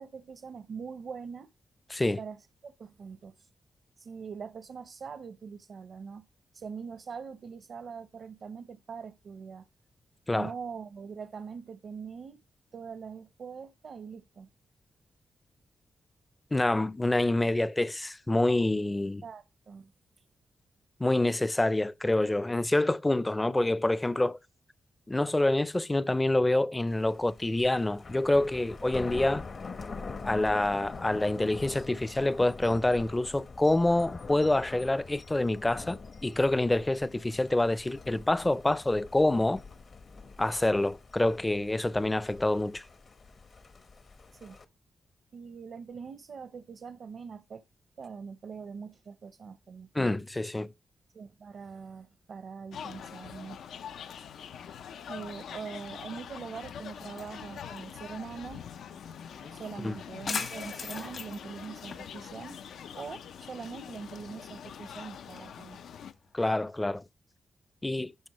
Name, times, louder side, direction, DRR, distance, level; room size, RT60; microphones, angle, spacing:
voice 1, 0.0-1.5 2.2-3.5 4.0-6.3 6.5-9.6 10.3-12.4 12.7-14.5 19.2-19.9 44.4-44.6 45.3-47.6 48.0-49.9 51.1-53.6 55.1-58.6 59.5-62.6 62.9-65.8, right 6 dB, 65° right, 0.6 m, -43 dB
voice 2, 16.5-19.2 21.0-24.4 25.1-29.5 30.2-39.6 40.4-42.8 49.9-50.7 59.8-59.9 66.3-67.0 67.8-68.1, left 2 dB, 15° left, 0.4 m, -27 dB
Thunder, 26.9-44.6, left 4 dB, 55° left, 0.9 m, -45 dB
sound 1, 52.7-66.1, left 8 dB, 90° left, 0.5 m, -44 dB
sound 2, 56.9-66.6, left 5 dB, 70° left, 1.9 m, -44 dB
12.0 x 4.3 x 3.0 m
cardioid pair, 80°, 0 cm